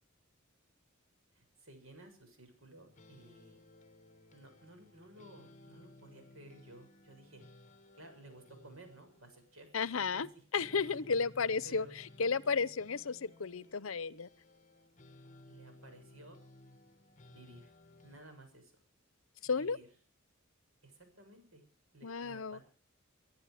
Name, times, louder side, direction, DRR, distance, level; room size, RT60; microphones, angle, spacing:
voice 1, 1.3-3.6 4.3-7.4 7.9-10.4 10.9-11.0 11.6-11.9 15.5-16.4 17.3-17.7 18.0-18.7 19.6-19.9 20.8-21.6 21.9-22.6, right 1 dB, 85° right, 6.9 m, -56 dB
sound 1, 2.7-18.2, left 2 dB, 35° left, 1.3 m, -59 dB
voice 2, 9.7-10.3 10.5-14.3 19.4-19.8 22.0-22.6, left 5 dB, 80° left, 0.8 m, -33 dB
23.5 x 11.5 x 4.9 m
head